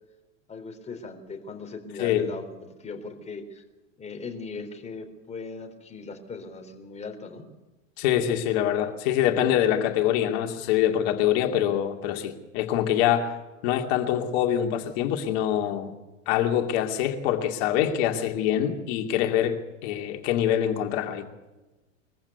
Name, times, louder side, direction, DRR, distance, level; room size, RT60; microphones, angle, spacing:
voice 1, 0.5-3.6 4.0-7.5, left 4 dB, 15° left, 3 dB, 3.9 m, -39 dB
voice 2, 8.0-13.3 13.6-15.9 16.3-21.3, left 10 dB, 55° left, 5 dB, 2.8 m, -25 dB
22.5 x 15.0 x 8.1 m, 1.1 s
hypercardioid pair, 95°, 38 cm